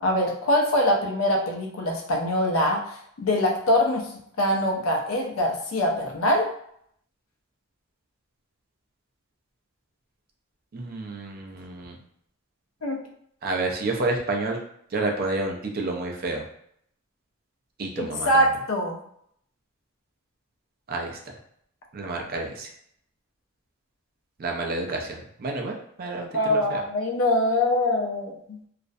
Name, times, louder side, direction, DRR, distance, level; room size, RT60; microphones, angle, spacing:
voice 1, 0.0-2.8 3.2-4.1 4.4-6.5 12.8-13.0 18.0-19.0 26.3-28.6, left 1 dB, 80° left, 0 dB, 0.5 m, -23 dB
voice 2, 10.7-12.0 13.4-14.6 14.9-16.4 17.8-18.4 20.9-21.2 21.9-22.7 24.4-26.8, right 2 dB, 45° right, 2 dB, 0.4 m, -29 dB
2.4 x 2.0 x 2.5 m, 0.69 s
head